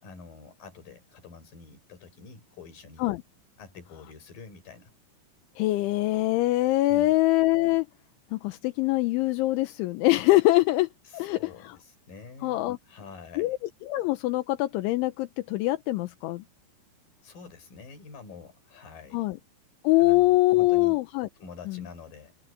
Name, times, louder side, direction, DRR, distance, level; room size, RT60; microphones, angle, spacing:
voice 1, 0.0-3.0 3.6-4.9 6.9-7.1 11.0-13.6 17.2-19.2 20.0-21.0 21.4-22.4, left 4 dB, 50° left, 6.3 m, -47 dB
voice 2, 5.6-7.9 8.3-11.8 12.4-12.8 13.4-13.6 13.9-16.4 19.1-19.4 19.8-21.3 21.7-21.8, left 18 dB, 80° left, 3.3 m, -24 dB
omnidirectional pair, 5.5 m